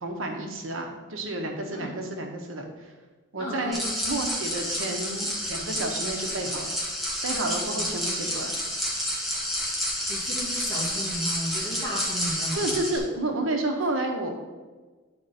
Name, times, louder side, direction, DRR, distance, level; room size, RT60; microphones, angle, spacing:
voice 1, 0.0-2.7 3.3-6.7 7.2-8.5 12.6-14.3, right 2 dB, 85° right, 2 dB, 1.1 m, -30 dB
voice 2, 3.4-3.8 7.7-7.9 10.1-12.8, equal, 20° left, -8 dB, 2.5 m, -34 dB
sound 1, 3.7-13.0, equal, ahead, 1.4 m, -30 dB
10.5 x 4.4 x 4.2 m, 1.3 s
head